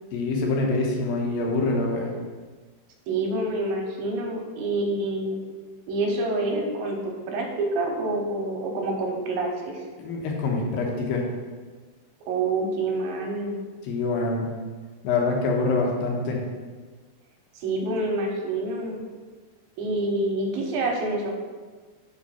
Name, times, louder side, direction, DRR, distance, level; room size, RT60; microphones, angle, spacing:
voice 1, 0.1-2.1 10.0-11.3 13.9-14.5 15.0-16.4, left 3 dB, 70° left, 0 dB, 2.4 m, -25 dB
voice 2, 3.1-5.4 5.9-9.8 12.3-13.6 17.6-19.1 19.8-21.3, right 2 dB, 75° right, 1 dB, 2.3 m, -27 dB
5.6 x 5.5 x 5.6 m, 1.4 s
omnidirectional pair, 4.8 m